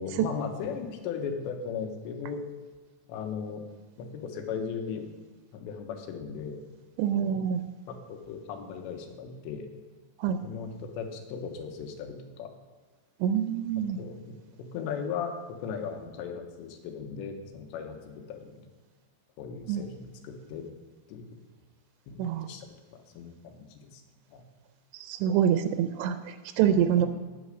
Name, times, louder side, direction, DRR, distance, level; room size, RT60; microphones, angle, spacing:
voice 1, 0.0-2.4 3.1-3.6 4.0-5.1 5.5-6.6 7.1-7.5 7.9-9.7 10.4-12.5 14.0-15.3 15.6-18.6 19.4-20.7 21.1-21.4 22.1-24.0 24.3-24.4 26.6-27.0, left 6 dB, 80° left, 5 dB, 3.2 m, -37 dB
voice 2, 7.0-7.6 10.2-10.4 13.2-14.0 19.7-19.8 22.2-22.5 24.9-27.1, right 9 dB, 85° right, 9 dB, 2.7 m, -26 dB
8.8 x 8.3 x 6.3 m, 1.3 s
omnidirectional pair, 5.0 m